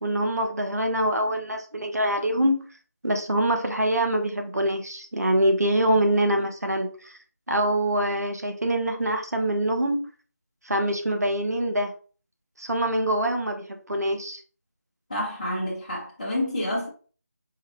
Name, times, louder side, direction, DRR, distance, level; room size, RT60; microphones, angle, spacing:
voice 1, 0.0-2.6 3.0-7.1 7.5-10.0 10.6-11.9 12.6-14.4, right 1 dB, 70° right, 1.0 m, -24 dB
voice 2, 15.1-16.9, left 1 dB, 25° left, 0.9 m, -28 dB
4.7 x 2.4 x 3.3 m
figure-of-eight pair, 165°, 9 cm